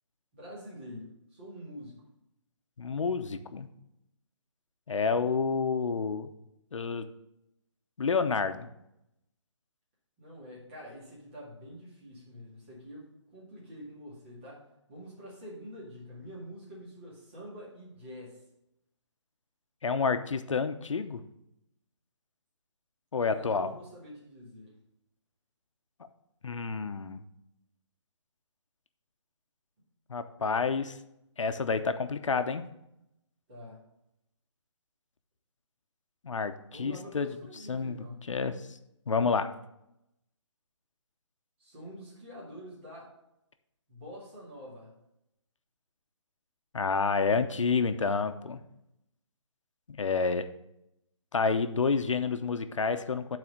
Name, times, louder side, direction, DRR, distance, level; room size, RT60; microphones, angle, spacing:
voice 1, 0.3-2.0 10.2-18.4 23.3-24.7 33.5-33.8 36.7-38.2 41.6-43.1 43.9-44.9, equal, 20° right, -7 dB, 2.2 m, -46 dB
voice 2, 2.8-3.7 4.9-6.3 6.7-7.1 8.0-8.7 19.8-21.2 23.1-23.7 26.4-27.2 30.1-30.9 31.4-32.6 36.2-37.3 37.7-38.5 39.1-39.5 46.7-48.6 49.9-50.4 51.3-53.4, left 5 dB, 85° left, 9 dB, 0.8 m, -29 dB
8.6 x 4.2 x 6.5 m, 0.83 s
hypercardioid pair, 175°, 16 cm